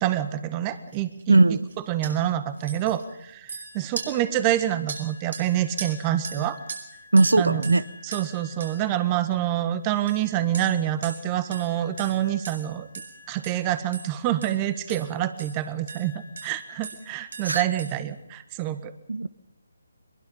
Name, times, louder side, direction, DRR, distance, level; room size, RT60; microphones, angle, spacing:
voice 1, 0.0-1.4 1.9-6.6 7.4-12.9 13.3-16.1 16.4-18.9, right 12 dB, 20° right, 12 dB, 1.6 m, -27 dB
sound 1, 0.9-1.2 1.5-1.7 2.0-2.1 2.6-9.6 10.1-18.0, right 4 dB, 65° right, 6.7 m, -41 dB
voice 2, 1.3-1.6 7.1-7.8 17.4-17.6 19.1-19.3, right 2 dB, 80° right, 17 dB, 1.0 m, -18 dB
23.0 x 22.0 x 5.6 m, 0.82 s
figure-of-eight pair, 155°, 0 cm